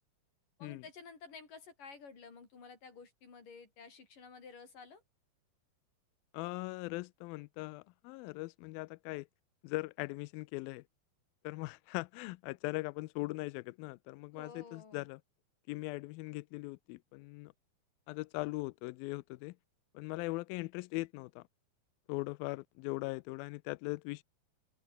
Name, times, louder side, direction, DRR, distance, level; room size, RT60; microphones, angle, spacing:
voice 1, 0.6-5.0 14.3-15.0, left 5 dB, 55° left, 6.9 m, -52 dB
voice 2, 6.3-9.3 9.6-10.8 11.4-15.2 15.7-17.5 18.1-19.6 19.9-21.4 22.1-24.2, left 23 dB, 85° left, 2.2 m, -40 dB
open air
omnidirectional pair, 4.6 m